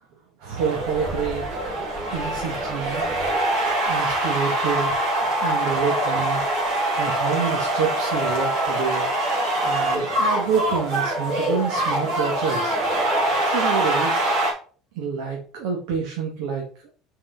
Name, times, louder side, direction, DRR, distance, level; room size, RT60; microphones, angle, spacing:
voice 1, 0.4-1.4 2.1-3.0 3.8-5.0 5.4-6.4 7.0-9.1 9.6-12.7 13.4-14.2 14.9-16.6, right 6 dB, 80° right, -1 dB, 1.7 m, -27 dB
sound 1, 0.6-14.5, right 1 dB, 60° right, 3.0 m, -24 dB
5.7 x 4.8 x 4.4 m, 0.40 s
cardioid pair, 130°, 0 cm